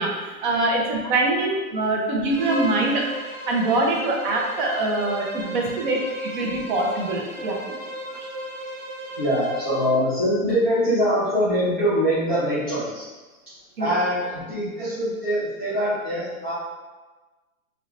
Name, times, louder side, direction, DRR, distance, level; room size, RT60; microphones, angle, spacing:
voice 1, 0.0-3.1 3.5-7.6 13.8-14.0, right 2 dB, 35° right, -1 dB, 0.8 m, -24 dB
Bowed string instrument, 2.3-10.0, right 1 dB, 60° right, 1.1 m, -35 dB
voice 2, 9.2-13.0 13.8-16.5, equal, 10° right, -16 dB, 0.3 m, -23 dB
5.6 x 3.2 x 2.6 m, 1.2 s
hypercardioid pair, 145°, 43 cm